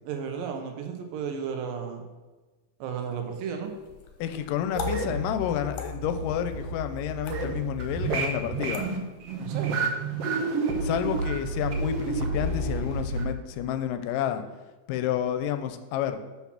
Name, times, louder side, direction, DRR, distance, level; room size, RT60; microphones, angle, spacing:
voice 1, 0.1-2.0 2.8-3.7 9.4-9.9, right 7 dB, 90° right, 4 dB, 2.6 m, -33 dB
sound 1, 3.6-9.5, left 4 dB, 65° left, 1.9 m, -44 dB
voice 2, 4.2-8.8 10.8-14.4 14.9-16.2, left 10 dB, 85° left, 9 dB, 2.2 m, -30 dB
sound 2, 4.7-13.2, right 3 dB, 70° right, 1.5 m, -30 dB
5.9 x 5.8 x 5.8 m, 1.2 s
omnidirectional pair, 3.9 m